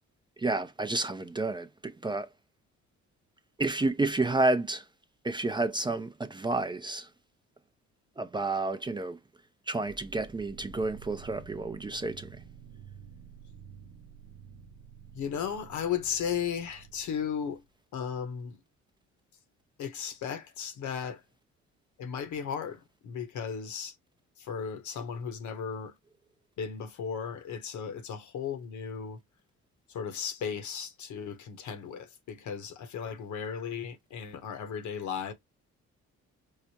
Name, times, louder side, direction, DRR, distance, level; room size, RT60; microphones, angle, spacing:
voice 1, 0.4-2.3 3.6-4.9 5.2-7.1 8.2-9.2 9.7-12.4, right 2 dB, 15° right, 0.4 m, -30 dB
sound 1, 9.9-17.7, right 6 dB, 55° right, 0.6 m, -50 dB
voice 2, 15.1-17.6 17.9-18.6 19.8-21.2 22.0-23.9 24.4-25.9 26.6-29.2 29.9-35.3, left 7 dB, 75° left, 0.9 m, -35 dB
4.7 x 2.1 x 2.8 m
cardioid pair, 90°, 30 cm